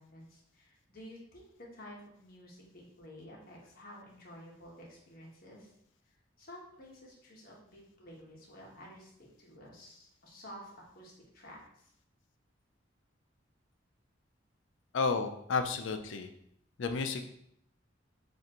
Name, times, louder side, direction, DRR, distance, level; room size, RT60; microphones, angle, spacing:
voice 1, 0.0-5.7 6.4-9.1 9.4-11.9, equal, 50° left, -3 dB, 1.2 m, -52 dB
voice 2, 14.9-16.3 16.8-17.2, left 4 dB, 75° left, 7 dB, 0.5 m, -31 dB
6.7 x 2.5 x 3.0 m, 0.72 s
head